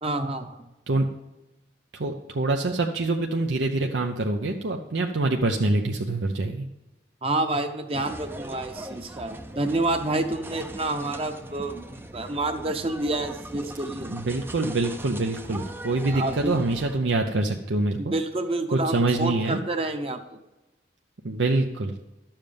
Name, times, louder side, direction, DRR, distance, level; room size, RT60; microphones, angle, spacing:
voice 1, 0.0-0.6 7.2-14.1 16.1-16.6 18.0-20.2, right 2 dB, 30° right, 6 dB, 0.9 m, -28 dB
voice 2, 1.9-6.7 14.1-18.1 18.7-19.6 21.2-22.0, right 2 dB, 80° right, 2 dB, 0.7 m, -25 dB
sound 1, 7.9-17.0, right 1 dB, 10° right, 0.5 m, -40 dB
12.0 x 7.4 x 5.2 m, 1.0 s
head